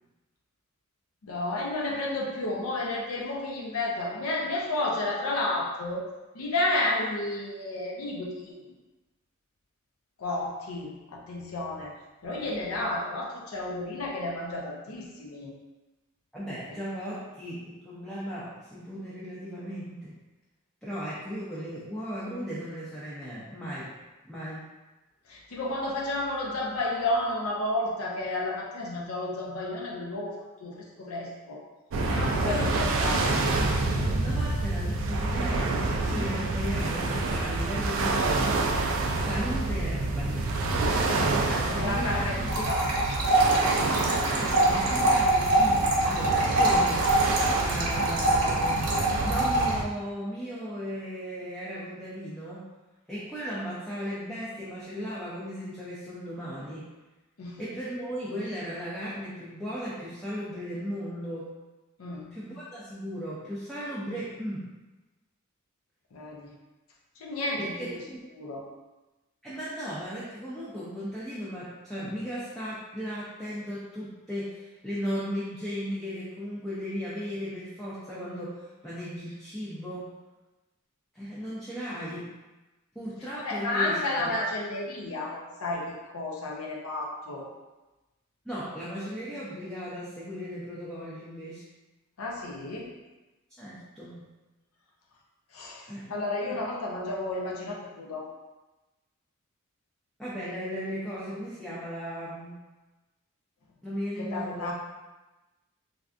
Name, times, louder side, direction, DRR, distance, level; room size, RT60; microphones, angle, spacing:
voice 1, 1.2-6.0 6.3-8.6 10.2-11.9 12.2-15.5 25.3-31.6 32.1-33.2 41.7-42.4 42.6-42.8 57.4-57.6 62.0-62.4 66.1-66.5 67.2-67.8 68.4-68.6 83.4-87.5 92.2-92.9 95.5-98.3 104.2-104.7, left 2 dB, 65° left, -2 dB, 0.5 m, -31 dB
voice 2, 16.3-20.1 20.8-23.9 24.2-24.6 32.4-33.1 34.0-38.3 39.1-40.9 41.4-42.6 44.0-47.1 47.6-48.8 49.2-52.7 53.1-56.9 57.6-61.5 62.3-64.7 67.6-68.2 69.4-80.1 81.1-82.3 82.9-84.3 88.4-91.6 93.6-94.2 95.9-96.6 100.2-102.6 103.8-104.7, equal, ahead, -9 dB, 0.4 m, -36 dB
sound 1, 31.9-49.8, right 2 dB, 60° right, 0.3 m, -28 dB
sound 2, 42.5-49.7, right 1 dB, 85° right, 0.8 m, -24 dB
3.4 x 2.4 x 2.4 m, 1.1 s
head